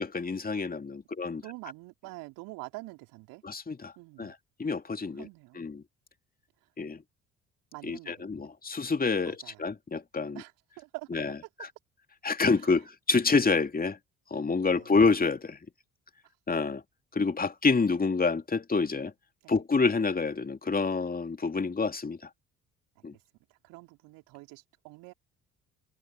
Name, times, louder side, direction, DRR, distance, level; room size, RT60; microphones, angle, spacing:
voice 1, 0.0-1.4 3.4-3.9 4.2-4.3 4.6-5.3 5.6-5.8 6.8-7.0 7.8-10.4 11.1-11.3 12.2-14.0 14.3-15.6 16.5-16.8 17.1-19.1 19.5-22.2 23.0-23.1, left 4 dB, 25° left, 2.6 m, -27 dB
voice 2, 1.4-3.4 4.0-4.3 5.1-5.6 7.7-8.4 9.3-9.6 10.3-11.2 12.6-12.7 14.7-14.9 19.4-19.6 23.0-23.1 23.5-25.1, right 23 dB, 65° right, 3.9 m, -46 dB
figure-of-eight pair, 50°, 36 cm